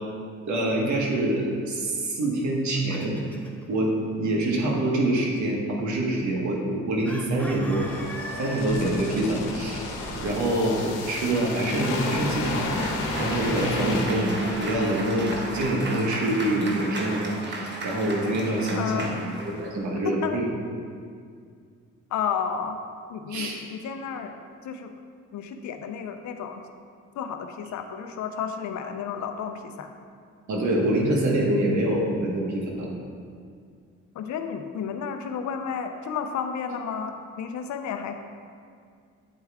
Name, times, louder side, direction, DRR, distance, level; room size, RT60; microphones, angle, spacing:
voice 1, 0.5-3.2 3.7-7.9 8.4-9.9 10.2-12.7 13.2-20.5 23.3-23.6 30.5-32.9, right 1 dB, 70° right, -1 dB, 1.4 m, -25 dB
Chicken rooster, 2.4-3.6 7.0-9.2, equal, 5° left, 0.8 m, -39 dB
sound 1, 7.4-15.8 16.1-16.3, left 2 dB, 90° left, 1.1 m, -32 dB
Cheering / Applause, 12.1-19.8, right 2 dB, 35° right, 1.1 m, -35 dB
voice 2, 18.8-19.2 20.0-20.4 22.1-22.8 23.1-24.4 24.6-24.9 25.3-26.6 27.1-29.9 34.1-38.1, left 7 dB, 70° left, 6 dB, 0.6 m, -32 dB
9.1 x 4.6 x 3.5 m, 2.2 s
cardioid pair, 90°, 30 cm